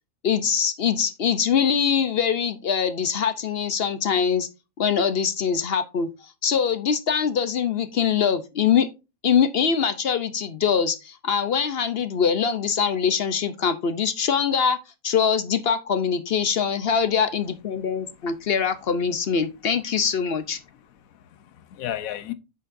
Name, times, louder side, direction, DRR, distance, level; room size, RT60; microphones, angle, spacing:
voice 1, 0.2-4.5 4.8-8.9 9.2-14.8 15.0-20.6, left 7 dB, 55° left, 0.7 m, -23 dB
voice 2, 17.8-18.5 20.6-22.3, left 12 dB, 85° left, 1.2 m, -36 dB
9.0 x 6.7 x 2.6 m
omnidirectional pair, 1.4 m